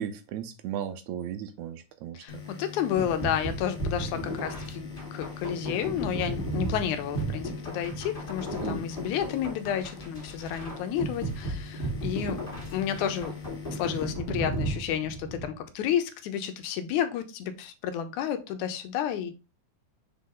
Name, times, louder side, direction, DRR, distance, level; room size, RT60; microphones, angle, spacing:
voice 1, 0.0-2.5 8.5-8.8, right 9 dB, 80° right, 2.0 m, -36 dB
voice 2, 2.1-12.4 12.7-13.3 13.7-19.3, left 9 dB, 80° left, 2.1 m, -31 dB
sound 1, 2.3-15.2, left 5 dB, 35° left, 0.8 m, -43 dB
sound 2, 3.0-15.5, right 1 dB, 20° left, 2.5 m, -35 dB
6.0 x 4.2 x 3.8 m
omnidirectional pair, 3.5 m